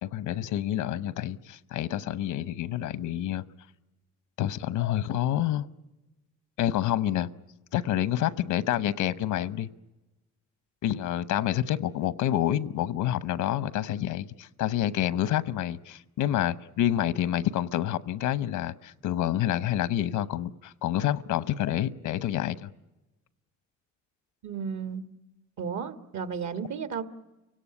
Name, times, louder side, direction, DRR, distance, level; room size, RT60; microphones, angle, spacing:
voice 1, 0.0-3.4 4.4-5.7 6.6-7.3 7.7-9.7 10.8-22.7, left 12 dB, 85° left, 16 dB, 1.0 m, -28 dB
voice 2, 24.4-25.1 25.6-27.0, right 6 dB, 70° right, 10 dB, 1.8 m, -33 dB
30.0 x 17.5 x 9.9 m, 1.1 s
cardioid pair, 90°, 30 cm